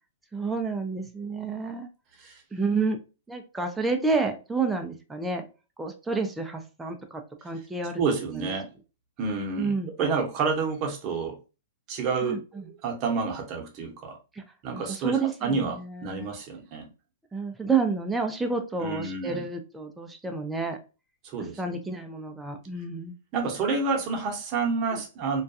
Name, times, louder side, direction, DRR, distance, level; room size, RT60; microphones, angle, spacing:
voice 1, 0.3-1.9 2.5-3.0 3.3-5.5 5.8-8.0 8.3-8.5 9.6-9.9 12.2-12.7 14.3-14.4 14.7-16.3 17.3-20.8 21.6-23.1 24.9-25.0, right 4 dB, 10° right, 4 dB, 0.4 m, -30 dB
voice 2, 8.0-8.7 9.2-11.4 11.9-12.4 12.7-14.2 14.6-16.9 18.8-19.5 21.2-21.6 23.3-25.4, right 4 dB, 35° right, 1 dB, 0.9 m, -29 dB
2.3 x 2.2 x 2.7 m, 0.31 s
hypercardioid pair, 130°, 0 cm